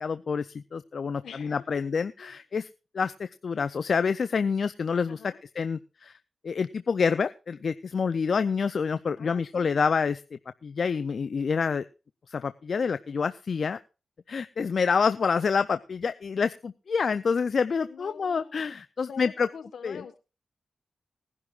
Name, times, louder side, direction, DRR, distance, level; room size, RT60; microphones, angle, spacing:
voice 1, 0.0-2.7 2.9-6.2 6.4-11.8 12.3-13.8 14.3-19.5 19.8-20.0, left 5 dB, 65° left, 11 dB, 0.5 m, -27 dB
voice 2, 1.2-1.6 2.2-2.3 5.1-5.4 9.2-9.8 17.9-18.6 19.0-20.2, left 7 dB, 85° left, 9 dB, 1.3 m, -45 dB
20.0 x 11.0 x 2.4 m, 0.32 s
cardioid pair, 50°, 0 cm